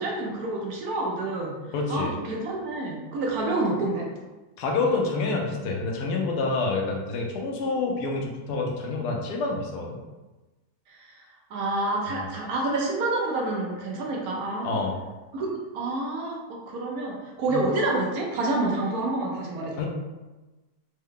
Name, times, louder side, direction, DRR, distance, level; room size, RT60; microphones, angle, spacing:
voice 1, 0.0-1.6 1.9-4.1 10.9-11.2 11.5-14.8 15.3-19.9, right 2 dB, 70° right, -1 dB, 1.1 m, -28 dB
voice 2, 1.7-2.1 4.6-10.0 12.1-12.2 14.6-14.9 17.5-17.6 19.8-19.9, left 3 dB, 75° left, 0 dB, 1.1 m, -27 dB
3.5 x 2.2 x 3.6 m, 1.2 s
omnidirectional pair, 1.8 m